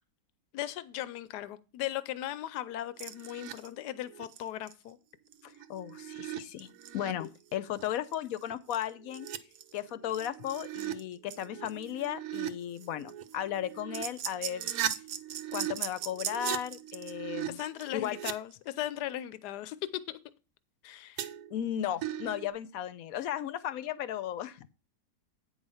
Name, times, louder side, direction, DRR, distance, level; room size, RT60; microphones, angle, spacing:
voice 1, 0.5-5.0 7.2-7.3 17.5-19.8 20.1-20.2 20.8-21.2, left 13 dB, 85° left, 1.2 m, -38 dB
sound 1, 3.0-3.7 4.1-4.4 4.7-4.8 5.3-7.1 7.7-7.9 8.1-8.2 8.5-11.0 11.3-12.5 12.8-18.3 21.2-21.7 22.0-22.5, right 11 dB, 70° right, 1.1 m, -38 dB
voice 2, 5.4-9.3 9.7-14.7 15.5-17.6 17.9-18.2 21.5-24.7, left 11 dB, 70° left, 1.0 m, -35 dB
9.0 x 4.8 x 5.5 m
omnidirectional pair, 1.7 m